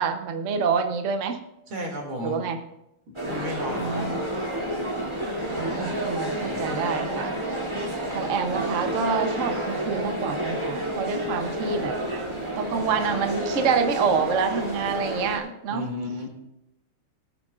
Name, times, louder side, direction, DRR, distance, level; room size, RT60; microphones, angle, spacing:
voice 1, 0.0-1.4 2.2-2.6 3.8-4.1 5.6-7.3 8.1-11.9 12.6-15.9, right 6 dB, 55° right, 6 dB, 0.9 m, -27 dB
voice 2, 1.7-2.4 3.3-4.1 15.7-16.3, left 1 dB, 70° right, 0 dB, 3.3 m, -32 dB
sound 1, 3.1-15.4, right 1 dB, 15° right, 2.5 m, -30 dB
19.0 x 8.9 x 2.5 m, 0.85 s
omnidirectional pair, 2.3 m